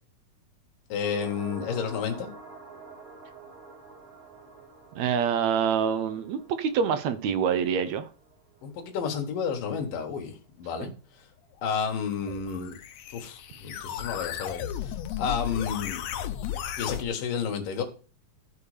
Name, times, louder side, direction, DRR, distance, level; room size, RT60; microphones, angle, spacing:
voice 1, 0.9-2.3 8.6-10.9 11.6-12.7 13.1-16.0 16.8-17.8, left 6 dB, 85° left, 3 dB, 3.2 m, -31 dB
sound 1, 0.9-9.4 9.7-9.8, right 4 dB, 45° right, 3.8 m, -47 dB
voice 2, 5.0-8.1 10.8-10.9, right 7 dB, 70° right, 11 dB, 1.8 m, -26 dB
sound 2, 12.1-17.0, left 10 dB, 70° left, 1.8 m, -35 dB
14.0 x 4.8 x 4.9 m, 0.37 s
omnidirectional pair, 3.8 m